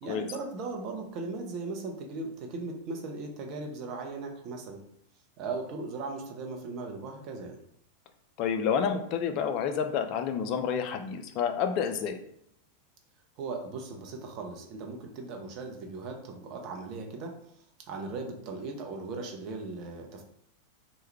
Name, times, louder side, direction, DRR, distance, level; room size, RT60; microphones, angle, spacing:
voice 1, 0.0-4.8 5.4-7.6 13.4-17.3 17.9-20.2, right 3 dB, 40° right, 2 dB, 0.7 m, -38 dB
voice 2, 8.4-12.2, left 7 dB, 40° left, 6 dB, 0.4 m, -29 dB
3.1 x 2.2 x 3.3 m, 0.72 s
figure-of-eight pair, 90°, 0 cm